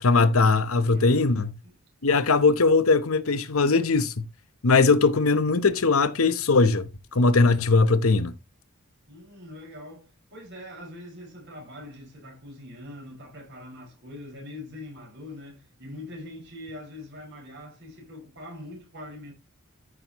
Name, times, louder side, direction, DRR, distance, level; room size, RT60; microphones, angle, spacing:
voice 1, 0.0-1.5 2.0-4.1 4.6-8.3, left 3 dB, 80° left, 1.0 m, -20 dB
voice 2, 0.9-1.7 9.1-19.3, left 1 dB, 55° right, 5.4 m, -43 dB
13.5 x 6.4 x 3.0 m
head